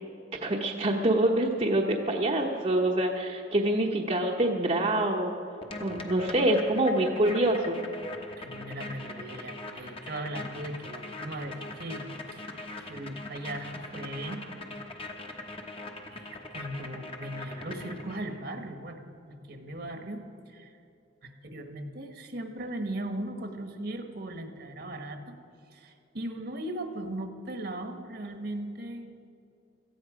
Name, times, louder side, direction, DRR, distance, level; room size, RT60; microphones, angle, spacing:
voice 1, 0.4-5.3 5.8-7.8, right 1 dB, 35° right, 0 dB, 1.0 m, -26 dB
sound 1, 5.6-18.4, left 2 dB, 30° left, 1.2 m, -41 dB
voice 2, 8.4-12.5 12.8-14.4 16.1-20.7 21.2-25.3 25.7-29.1, right 1 dB, 60° right, 6 dB, 1.4 m, -38 dB
17.5 x 14.0 x 5.0 m, 2.7 s
head